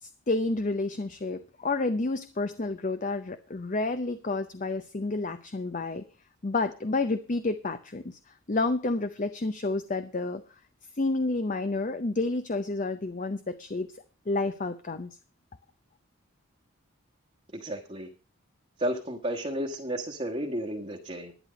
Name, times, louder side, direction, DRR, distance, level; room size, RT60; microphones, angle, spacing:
voice 1, 0.0-6.0 6.4-10.4 11.0-13.9 14.3-15.1, left 3 dB, 40° left, 10 dB, 0.6 m, -30 dB
voice 2, 17.5-18.1 18.8-21.3, right 1 dB, 30° right, -1 dB, 1.4 m, -32 dB
11.0 x 10.5 x 5.1 m, 0.35 s
head